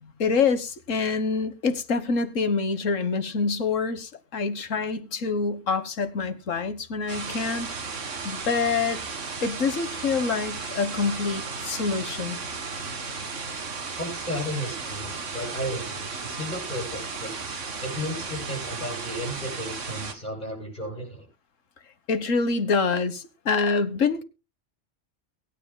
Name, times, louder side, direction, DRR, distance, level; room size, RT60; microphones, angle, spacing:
voice 1, 0.0-7.7 8.2-9.0 9.4-12.4 22.1-24.2, left 4 dB, 85° left, 1.7 m, -26 dB
sound 1, 7.1-20.1, right 4 dB, 75° right, 2.1 m, -35 dB
voice 2, 14.0-21.3, equal, 40° left, 8.3 m, -34 dB
23.0 x 9.8 x 2.2 m
omnidirectional pair, 1.3 m